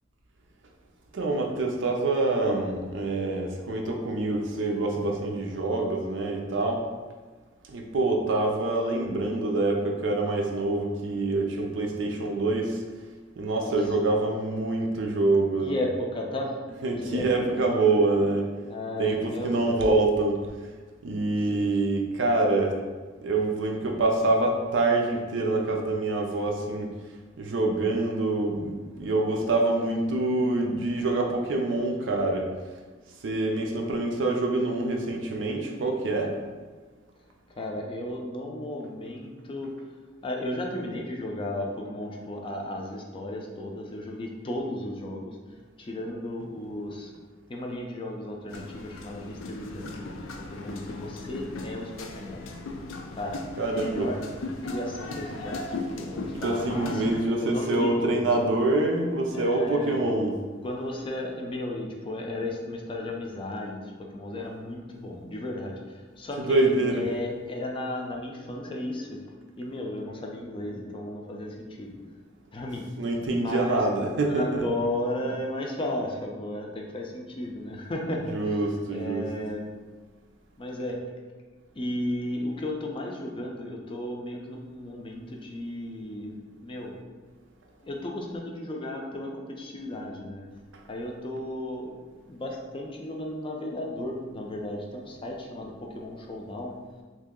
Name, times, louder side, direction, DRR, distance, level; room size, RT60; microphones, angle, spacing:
voice 1, 1.1-6.8 7.7-12.8 13.4-15.8 16.7-18.5 19.0-20.7 21.0-22.8 23.2-26.9 27.4-32.5 33.2-36.3 53.6-54.1 56.2-60.4 64.4-64.5 66.3-67.1 73.0-74.7 78.3-79.3 90.7-90.8, right 2 dB, 70° right, 1 dB, 0.5 m, -26 dB
voice 2, 15.6-16.6 17.0-17.3 18.7-19.8 21.5-21.6 37.5-39.7 40.2-45.4 45.8-47.1 47.5-52.5 53.1-53.4 53.7-54.2 54.6-57.0 57.4-58.3 59.3-60.0 60.6-69.2 69.6-71.9 72.5-72.9 73.4-73.8 74.3-79.7 80.6-81.0 81.8-86.9 87.8-90.4 90.9-96.7, left 1 dB, 25° left, 0 dB, 0.4 m, -34 dB
sound 1, 48.5-57.3, left 2 dB, 85° left, 0.4 m, -37 dB
3.0 x 2.6 x 3.6 m, 1.4 s
head